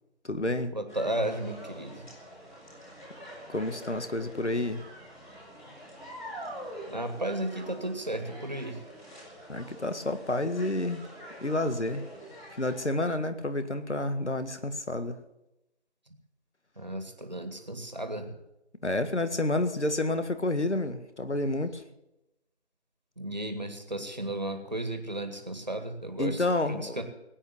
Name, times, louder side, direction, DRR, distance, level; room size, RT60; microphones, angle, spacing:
voice 1, 0.2-0.7 3.5-4.9 9.5-11.0 11.4-12.0 12.6-15.2 18.8-21.8 26.2-27.0, left 2 dB, 75° left, 10 dB, 1.9 m, -29 dB
voice 2, 0.7-2.0 6.9-8.8 16.8-18.4 23.2-26.4 26.7-27.0, right 1 dB, 40° right, 6 dB, 2.0 m, -34 dB
sound 1, 0.9-12.9, equal, 40° left, 7.1 m, -45 dB
19.5 x 9.0 x 7.2 m, 0.90 s
figure-of-eight pair, 175°, 35 cm